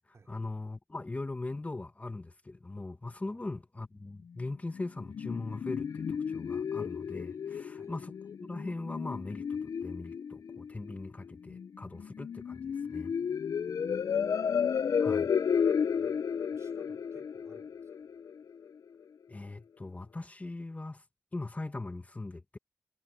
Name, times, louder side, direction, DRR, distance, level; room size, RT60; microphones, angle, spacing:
voice 1, 0.3-8.1 8.4-13.2 15.0-15.3 19.3-21.0 21.3-22.6, left 2 dB, 25° left, 0.9 m, -40 dB
sound 1, 4.7-18.7, left 7 dB, 90° left, 0.4 m, -33 dB
voice 2, 13.9-14.3 15.9-18.2 18.4-18.5, right 4 dB, 60° right, 3.4 m, -61 dB
wide cardioid pair, 105°, 6 cm